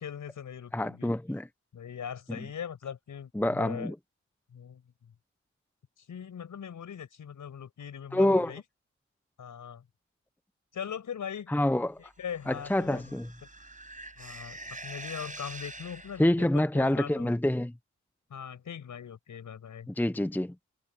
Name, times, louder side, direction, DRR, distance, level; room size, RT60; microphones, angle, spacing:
voice 1, 0.0-1.1 1.7-3.9 4.5-5.1 6.0-8.6 9.4-9.8 10.7-11.5 12.0-13.2 14.2-17.3 18.3-19.9, left 8 dB, 80° left, 5.8 m, -40 dB
voice 2, 0.7-1.5 3.3-3.9 8.1-8.5 11.5-12.0 12.5-13.3 16.2-17.7 20.0-20.5, left 1 dB, 5° left, 0.9 m, -26 dB
sound 1, 12.2-16.5, right 2 dB, 25° right, 5.4 m, -45 dB
supercardioid pair, 40°, 30 cm